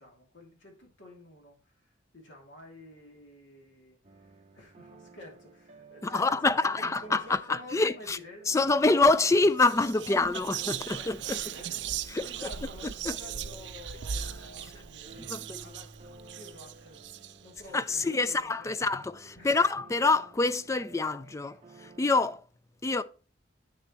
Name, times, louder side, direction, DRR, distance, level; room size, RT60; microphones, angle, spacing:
voice 1, 0.0-8.5 9.9-15.9 16.3-17.1 17.4-18.9 19.3-19.5 22.9-23.0, left 1 dB, 85° left, 2.5 m, -50 dB
sound 1, 4.0-22.4, right 3 dB, 35° right, 0.8 m, -54 dB
voice 2, 6.0-8.2 8.5-11.4 12.1-12.3 13.1-13.2 15.2-15.6 17.7-21.6 21.8-22.4 22.8-23.0, left 3 dB, 15° left, 0.3 m, -26 dB
Whispering, 9.1-9.3 9.6-17.7, right 9 dB, 65° right, 0.5 m, -38 dB
8.1 x 6.7 x 3.0 m
head